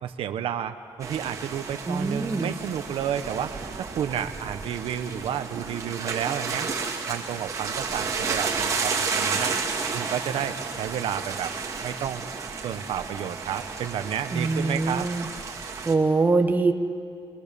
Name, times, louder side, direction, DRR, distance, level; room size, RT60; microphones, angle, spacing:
voice 1, 0.0-3.5 3.8-6.7 7.1-9.5 9.9-11.5 11.8-12.3 12.6-15.1, right 9 dB, 75° right, 9 dB, 1.0 m, -31 dB
sound 1, 1.0-15.9, right 5 dB, 35° right, 2.4 m, -32 dB
voice 2, 1.9-2.5 14.3-15.3 15.8-16.7, right 3 dB, 20° right, 6 dB, 1.0 m, -23 dB
23.5 x 23.0 x 6.9 m, 2.3 s
wide cardioid pair, 165°, 9 cm